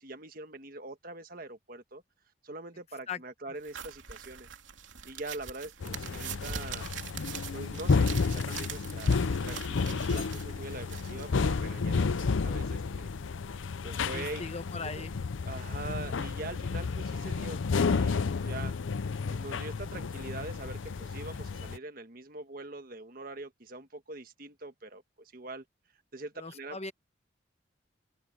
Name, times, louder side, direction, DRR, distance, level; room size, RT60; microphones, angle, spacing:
voice 1, 0.0-2.0 2.4-4.5 5.0-6.9 7.5-13.1 13.8-14.4 14.9-15.1 15.4-17.6 17.9-18.7 19.3-25.6 26.1-26.8, right 2 dB, 50° right, 1.4 m, -43 dB
sound 1, 3.6-11.8, right 8 dB, 80° right, 2.9 m, -43 dB
sound 2, 5.8-21.8, left 4 dB, 85° left, 0.6 m, -31 dB
voice 2, 14.0-15.1 26.4-26.9, left 4 dB, 35° left, 1.2 m, -39 dB
head